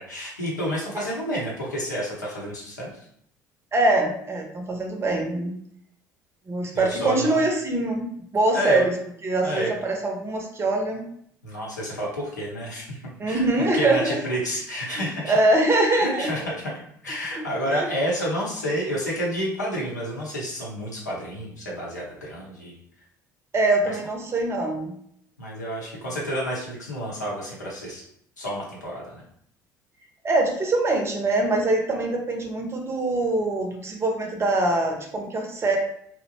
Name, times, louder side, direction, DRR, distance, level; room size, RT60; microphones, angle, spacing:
voice 1, 0.0-2.9 6.7-7.4 8.5-8.8 9.4-9.7 11.4-13.0 13.3-15.4 16.2-16.4 17.0-22.8 23.8-24.0 25.4-28.0 28.4-29.2, equal, 80° left, -4 dB, 0.7 m, -29 dB
voice 2, 3.7-5.5 6.5-8.1 8.3-8.9 9.2-11.0 13.2-14.2 15.0-16.3 17.3-17.4 17.7-17.9 23.5-24.9 30.2-35.8, right 2 dB, 30° right, 2 dB, 0.6 m, -23 dB
2.7 x 2.0 x 2.7 m, 0.68 s
figure-of-eight pair, 60°, 9 cm